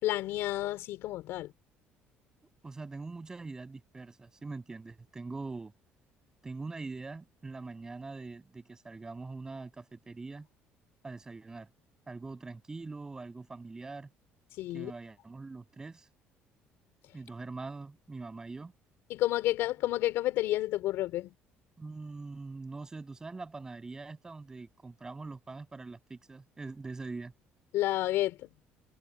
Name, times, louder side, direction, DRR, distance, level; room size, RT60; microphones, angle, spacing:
voice 1, 0.0-1.5 14.6-14.9 19.1-21.3 27.7-28.5, left 15 dB, 75° left, 4.5 m, -30 dB
voice 2, 2.6-5.7 6.4-10.5 11.0-11.7 12.1-14.1 14.7-16.1 17.1-18.7 21.8-27.3, right 3 dB, 15° right, 7.0 m, -43 dB
cardioid pair, 150°, 4 cm